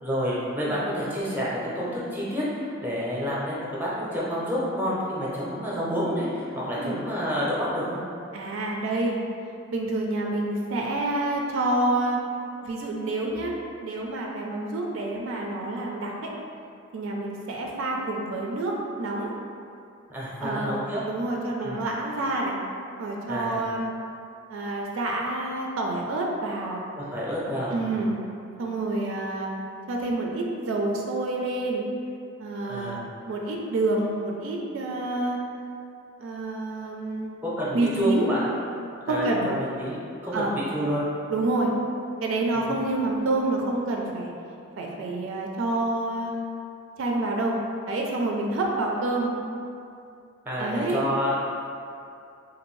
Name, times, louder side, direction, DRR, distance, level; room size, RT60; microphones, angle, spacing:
voice 1, 0.0-8.0 20.1-21.0 21.6-21.8 23.3-23.6 27.0-28.0 32.7-33.1 37.4-38.4 39.1-40.0 40.2-41.0 42.5-42.7 50.5-51.3, equal, 10° right, -7 dB, 0.6 m, -29 dB
voice 2, 8.3-9.2 9.7-12.2 12.6-13.5 13.8-16.3 16.9-19.3 20.4-20.8 21.1-22.6 23.0-23.9 24.5-26.8 27.7-28.2 28.6-29.5 29.9-31.8 32.4-35.4 36.2-37.3 37.7-38.3 39.1-39.5 40.3-40.6 41.3-41.7 42.2-44.3 44.8-46.3 47.0-47.6 47.9-49.3 50.6-51.0, right 2 dB, 70° right, -1 dB, 0.3 m, -28 dB
2.6 x 2.6 x 3.1 m, 2.6 s
head